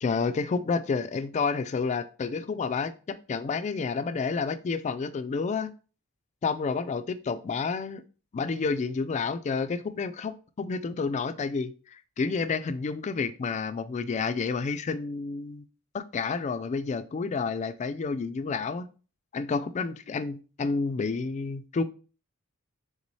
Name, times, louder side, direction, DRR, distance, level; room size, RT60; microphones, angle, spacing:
voice 1, 0.0-5.7 6.4-8.0 8.3-15.6 15.9-18.9 19.3-21.8, left 4 dB, 35° left, 12 dB, 0.3 m, -30 dB
4.0 x 3.6 x 3.1 m, 0.36 s
head